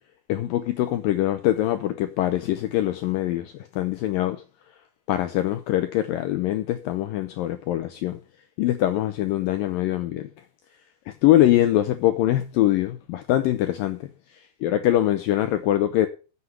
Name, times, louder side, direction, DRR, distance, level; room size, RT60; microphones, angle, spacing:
voice 1, 0.3-4.4 5.1-8.2 8.6-10.3 11.1-16.1, left 13 dB, 85° left, 2.0 m, -23 dB
7.9 x 7.8 x 8.1 m
omnidirectional pair, 4.9 m